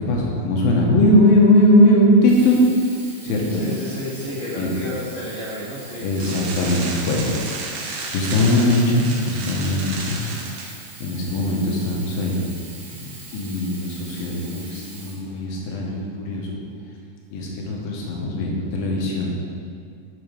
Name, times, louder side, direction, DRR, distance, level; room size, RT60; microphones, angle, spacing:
voice 1, 0.1-2.6 3.2-3.6 4.6-4.7 6.0-10.2 11.0-12.5 13.3-16.6 17.3-19.4, left 1 dB, 80° left, -2 dB, 2.8 m, -20 dB
Sink (filling or washing), 2.1-15.9 16.6-16.7, right 2 dB, 50° right, 1.4 m, -42 dB
voice 2, 3.5-6.4 14.6-14.7, left 1 dB, 20° right, -11 dB, 1.4 m, -31 dB
sound 1, 6.2-10.7, right 3 dB, 90° right, 2.8 m, -32 dB
8.7 x 7.2 x 3.2 m, 2.2 s
omnidirectional pair, 4.2 m